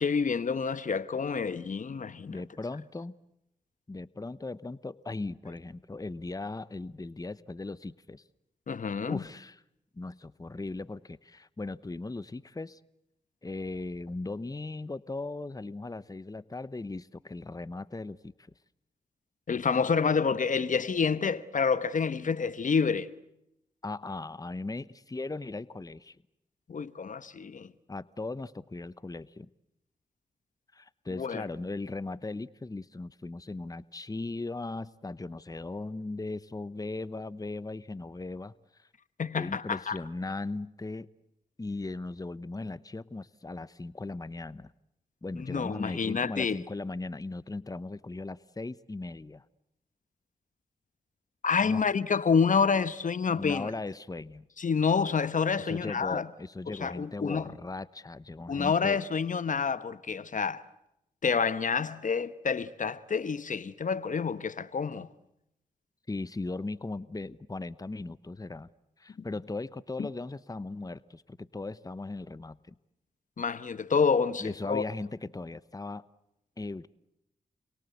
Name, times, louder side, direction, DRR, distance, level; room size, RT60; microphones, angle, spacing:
voice 1, 0.0-2.4 8.7-9.2 19.5-23.1 26.7-27.7 31.2-31.4 39.2-40.0 45.4-46.6 51.4-53.7 54.6-56.3 56.8-57.5 58.5-60.6 61.2-65.1 73.4-74.8, left 5 dB, 60° left, 1.1 m, -28 dB
voice 2, 2.3-3.1 3.9-8.2 9.1-9.6 9.9-12.8 13.4-18.3 23.8-26.2 27.9-29.5 30.7-38.9 39.3-41.1 41.6-44.7 45.2-49.4 51.6-51.9 53.3-54.5 55.6-59.0 66.1-68.7 69.0-72.8 74.4-76.1 76.6-76.9, left 2 dB, 25° left, 1.0 m, -38 dB
29.5 x 23.0 x 8.2 m
supercardioid pair, 40°, 15 cm